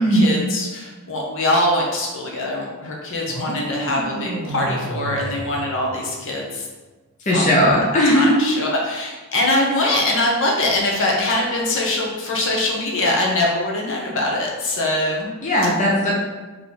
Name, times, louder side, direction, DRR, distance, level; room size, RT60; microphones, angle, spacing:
voice 1, 0.0-6.7 7.3-7.6 8.1-15.3, left 1 dB, 60° left, -2 dB, 0.9 m, -22 dB
sound 1, 3.3-6.4, right 1 dB, 80° right, 0.6 m, -31 dB
voice 2, 7.3-8.6 15.4-16.1, equal, 35° left, -4 dB, 0.7 m, -17 dB
3.7 x 3.1 x 3.9 m, 1.2 s
head